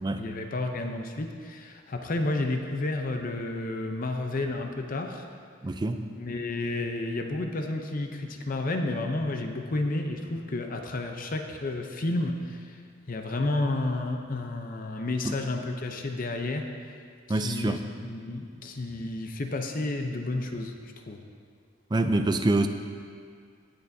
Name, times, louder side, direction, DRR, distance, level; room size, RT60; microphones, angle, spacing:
voice 1, 0.2-5.2 6.2-12.8 13.1-17.0 17.3-20.8 21.1-21.2, left 2 dB, 45° left, 4 dB, 0.6 m, -31 dB
voice 2, 5.6-6.0 17.3-17.8 21.9-22.7, right 2 dB, 20° right, 7 dB, 0.4 m, -25 dB
18.0 x 6.7 x 2.7 m, 2.1 s
head